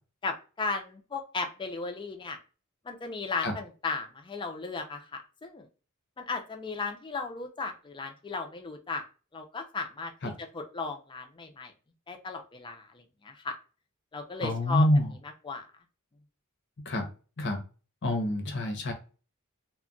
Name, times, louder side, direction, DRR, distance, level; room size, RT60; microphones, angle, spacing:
voice 1, 0.2-2.4 2.8-5.7 6.2-9.0 9.3-11.7 12.1-13.6 14.1-14.9 15.2-15.7, left 4 dB, 20° left, 4 dB, 0.4 m, -36 dB
voice 2, 14.4-15.1 16.9-17.1 17.4-17.6 18.0-18.9, left 1 dB, 55° left, 5 dB, 0.7 m, -26 dB
2.3 x 2.1 x 3.7 m, 0.35 s
head